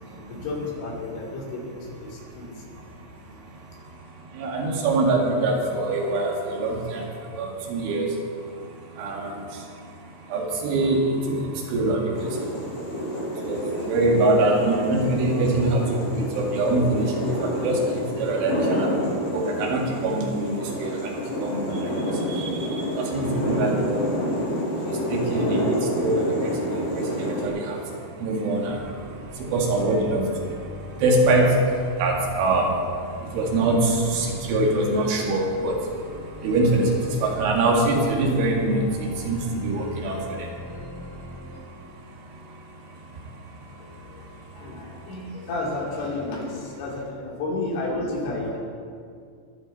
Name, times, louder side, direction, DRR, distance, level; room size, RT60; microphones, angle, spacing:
voice 1, 0.1-2.6 43.7-43.9 44.1-44.3 44.6-48.6, left 2 dB, 85° left, -4 dB, 5.7 m, -31 dB
voice 2, 4.4-7.0 7.4-8.2 9.0-9.3 10.3-11.4 11.7-12.1 13.4-13.6 13.8-15.8 16.1-17.1 17.4-18.9 19.3-21.0 21.4-21.8 22.3-24.0 25.1-25.6 26.0-26.5 27.2-27.8 28.2-28.8 29.4-30.3 31.0-31.6 32.0-32.7 33.3-35.8 36.4-36.9 37.2-38.9 39.3-40.2, right 2 dB, 90° right, 0 dB, 4.5 m, -23 dB
sound 1, 12.1-27.5, equal, 70° left, 6.1 m, -28 dB
sound 2, 28.6-41.6, left 2 dB, 50° left, 4.8 m, -41 dB
23.0 x 12.0 x 4.2 m, 2.2 s
omnidirectional pair, 5.4 m